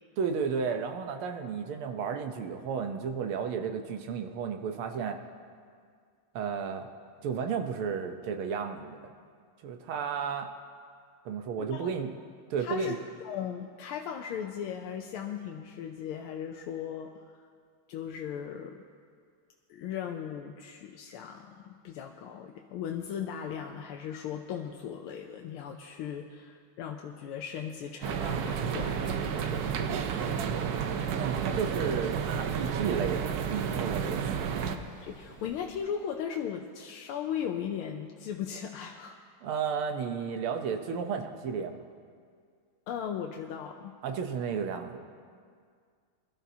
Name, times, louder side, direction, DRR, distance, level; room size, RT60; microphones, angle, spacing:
voice 1, 0.2-5.2 6.4-6.9 7.2-9.1 9.6-10.5 11.3-12.1 12.5-13.0 31.2-34.6 39.4-41.8 44.0-45.0, right 6 dB, 85° right, 5 dB, 1.8 m, -33 dB
voice 2, 12.6-13.0 13.2-17.4 17.9-18.8 19.7-30.5 35.0-39.2 42.9-44.0, left 8 dB, 85° left, 3 dB, 1.5 m, -37 dB
sound 1, 28.0-34.8, right 7 dB, 65° right, 0.9 m, -31 dB
Breathing, 29.8-35.9, right 1 dB, 25° right, 2.5 m, -51 dB
22.0 x 13.0 x 2.8 m, 2.1 s
omnidirectional pair, 2.3 m